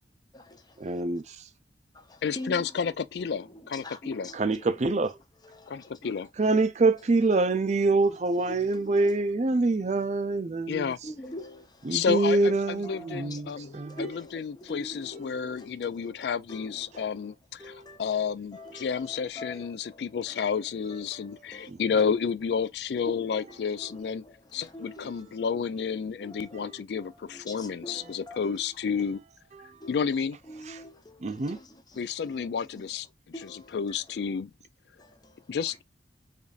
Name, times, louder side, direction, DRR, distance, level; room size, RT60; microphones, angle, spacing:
voice 1, 0.8-1.4 4.3-5.2 6.4-10.9 11.8-14.1 17.6-18.0 18.7-18.8 21.7-21.8 26.5-26.7 29.6-29.8 30.7-30.8 31.2-31.6, right 3 dB, 40° right, 0.4 m, -26 dB
voice 2, 2.2-4.3 5.7-6.3 10.7-11.0 11.9-13.7 14.0-17.3 17.7-24.2 24.5-29.2 29.9-30.4 32.0-34.5 35.5-35.8, left 6 dB, 65° left, 0.3 m, -31 dB
voice 3, 3.8-4.4 5.5-6.1 8.5-8.6 11.0-11.7 12.1-12.2 12.8-13.3 13.5-14.4 14.7-15.7 16.5-17.2 17.6-18.0 18.5-18.7 19.4-19.7 21.1-21.7 23.1-23.2 23.8-24.0 24.7-25.1 26.2-26.6 27.3-28.4 29.8-30.0 30.5-31.6 32.3-32.4 33.3-33.7 35.0-35.1, left 1 dB, 20° left, 0.7 m, -42 dB
5.0 x 2.6 x 2.4 m
head